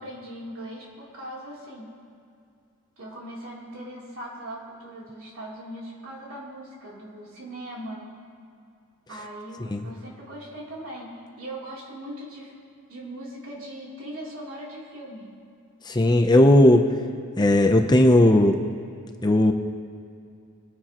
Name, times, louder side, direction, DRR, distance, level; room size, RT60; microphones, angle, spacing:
voice 1, 0.0-1.9 3.0-8.1 9.1-12.5 12.9-15.3, right 1 dB, 65° right, -5 dB, 3.3 m, -39 dB
voice 2, 15.9-16.9 17.4-18.6 19.2-19.5, left 1 dB, 20° left, 5 dB, 0.7 m, -16 dB
23.5 x 10.0 x 3.0 m, 2.4 s
head